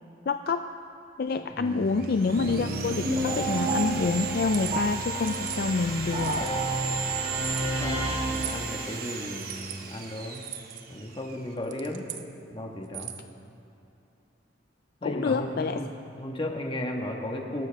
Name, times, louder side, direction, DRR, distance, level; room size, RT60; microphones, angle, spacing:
voice 1, 0.3-0.7 1.2-6.4 15.0-15.8, left 4 dB, 55° left, 8 dB, 0.4 m, -27 dB
voice 2, 1.6-2.1 7.6-10.5 10.9-12.0 12.5-13.1 15.0-15.9 16.2-17.7, left 1 dB, 30° left, 1 dB, 1.5 m, -35 dB
Sawing, 1.7-11.5, right 7 dB, 55° right, 1.1 m, -37 dB
sound 1, 2.4-9.1, right 1 dB, 35° right, 2.1 m, -30 dB
sound 2, 4.5-4.7 5.3-5.6 6.1-6.7 7.4-7.7 8.3-8.6 9.4-9.8 10.3-10.8 11.6-12.3 12.8-13.3, right 11 dB, 75° right, 0.9 m, -40 dB
24.5 x 13.0 x 3.5 m, 2.6 s
head